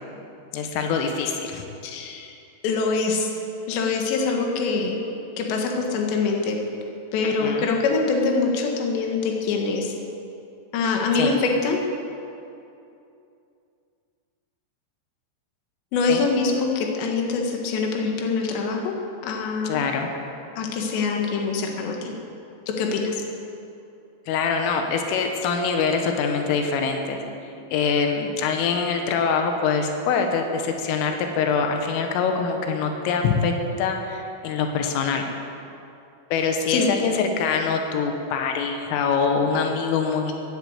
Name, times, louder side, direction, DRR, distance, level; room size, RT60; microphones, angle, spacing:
voice 1, 0.5-1.7 7.4-7.7 11.2-11.4 16.1-16.3 19.7-20.1 24.3-27.2 27.7-35.3 36.3-40.3, left 5 dB, 90° left, 4 dB, 3.8 m, -24 dB
voice 2, 1.8-2.3 2.6-3.3 3.7-5.0 5.4-6.6 7.1-9.9 10.7-11.8 15.9-18.9 19.2-19.8 20.6-22.1 22.7-23.2 36.7-36.9, left 4 dB, 70° left, 1 dB, 3.6 m, -24 dB
16.0 x 10.5 x 8.1 m, 2.7 s
omnidirectional pair, 5.7 m